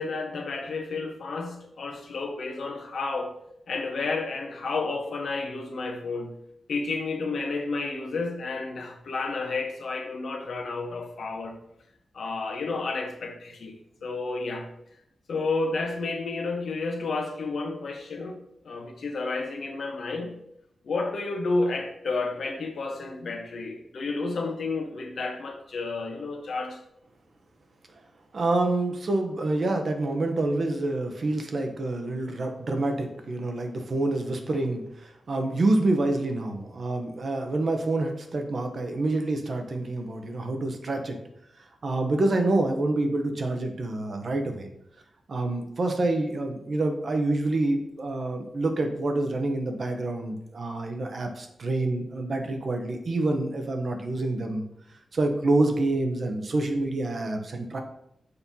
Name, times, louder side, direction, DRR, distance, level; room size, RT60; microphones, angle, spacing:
voice 1, 0.0-3.3 3.7-6.3 6.7-11.6 12.1-14.7 15.3-18.4 18.6-20.3 20.8-26.8, left 3 dB, 65° left, 3 dB, 1.0 m, -31 dB
voice 2, 28.3-41.2 41.8-44.7 45.3-54.7 55.1-57.8, right 2 dB, 45° right, 4 dB, 0.8 m, -27 dB
6.8 x 5.3 x 2.8 m, 0.77 s
wide cardioid pair, 140°, 0 cm